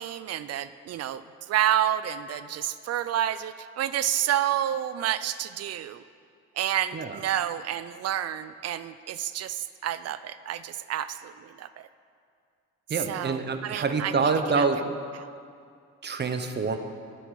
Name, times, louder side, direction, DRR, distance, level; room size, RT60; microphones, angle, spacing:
voice 1, 0.0-6.0 6.6-11.9 13.1-14.2 14.6-14.7, right 11 dB, 55° right, 14 dB, 0.4 m, -29 dB
voice 2, 12.9-14.8 16.0-16.8, right 4 dB, 35° right, 7 dB, 0.8 m, -26 dB
8.2 x 7.8 x 6.4 m, 2.3 s
cardioid pair, 90°, 30 cm